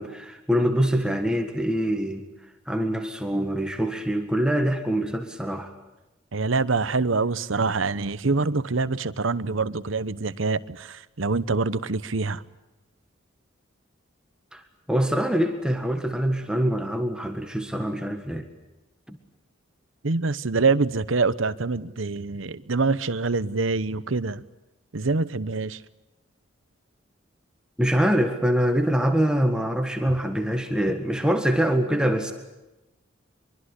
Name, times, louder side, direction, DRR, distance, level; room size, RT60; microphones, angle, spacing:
voice 1, 0.0-2.2 2.7-5.7 14.5-14.6 14.9-18.5 19.1-19.2 27.8-32.3, equal, 5° right, 1.7 m, -24 dB
voice 2, 6.3-12.4 20.0-24.4 24.9-25.8, right 3 dB, 85° right, 1.0 m, -25 dB
24.5 x 23.0 x 8.3 m
head